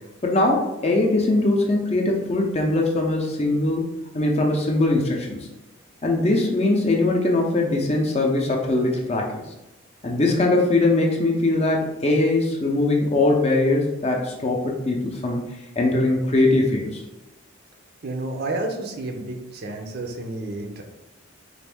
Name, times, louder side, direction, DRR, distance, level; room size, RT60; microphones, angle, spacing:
voice 1, 0.2-3.9 4.1-5.5 6.0-9.4 10.0-15.5 15.8-17.0, left 2 dB, 30° left, 0 dB, 0.6 m, -21 dB
voice 2, 18.0-20.8, right 2 dB, 50° right, 3 dB, 0.5 m, -30 dB
4.1 x 2.5 x 3.5 m, 1.0 s
head